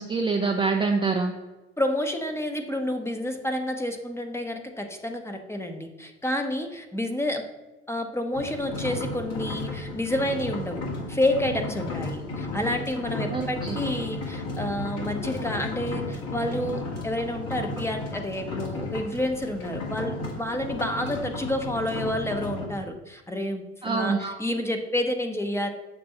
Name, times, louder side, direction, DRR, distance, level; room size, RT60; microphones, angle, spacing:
voice 1, 0.0-1.3 13.3-13.8 23.8-24.4, right 4 dB, 15° right, 2 dB, 0.5 m, -25 dB
voice 2, 1.8-7.4 7.9-25.7, left 1 dB, 10° left, 5 dB, 0.8 m, -29 dB
sound 1, 8.3-22.7, left 2 dB, 60° left, 1.9 m, -34 dB
6.8 x 2.6 x 5.4 m, 1.1 s
hypercardioid pair, 70°, 31 cm